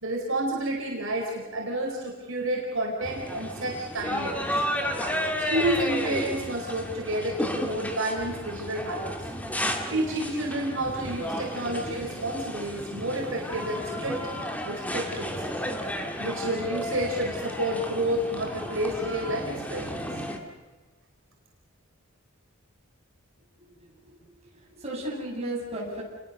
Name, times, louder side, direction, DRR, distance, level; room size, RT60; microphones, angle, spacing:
voice 1, 0.0-4.6 5.4-9.2 9.9-14.2 14.6-15.5 16.2-20.1, right 1 dB, 65° right, -1 dB, 4.5 m, -30 dB
sound 1, 3.0-20.4, equal, 5° left, 2.3 m, -33 dB
voice 2, 23.6-24.1 24.7-26.0, right 1 dB, 30° right, -2 dB, 7.3 m, -35 dB
29.5 x 21.5 x 6.7 m, 1.3 s
head